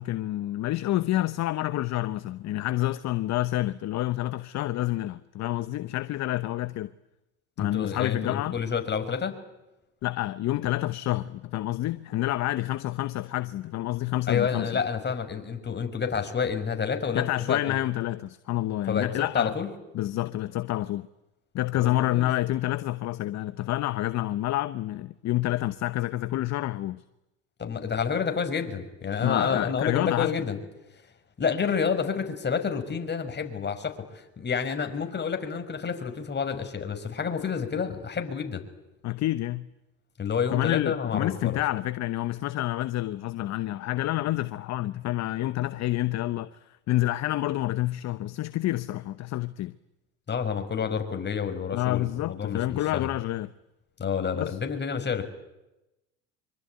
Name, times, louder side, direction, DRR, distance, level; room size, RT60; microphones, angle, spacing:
voice 1, 0.0-6.9 7.6-8.6 10.0-14.7 17.1-19.5 19.9-21.1 21.5-27.0 29.2-30.3 39.0-39.7 40.5-49.7 51.7-53.5 54.3-54.6, left 15 dB, 50° left, 1.0 m, -28 dB
voice 2, 7.6-9.3 14.3-17.8 18.9-19.7 21.7-22.3 27.6-30.6 31.4-38.6 40.2-41.6 50.3-53.1 54.0-55.3, left 6 dB, 30° left, 5.7 m, -29 dB
26.0 x 24.5 x 9.4 m
hypercardioid pair, 80°, 36 cm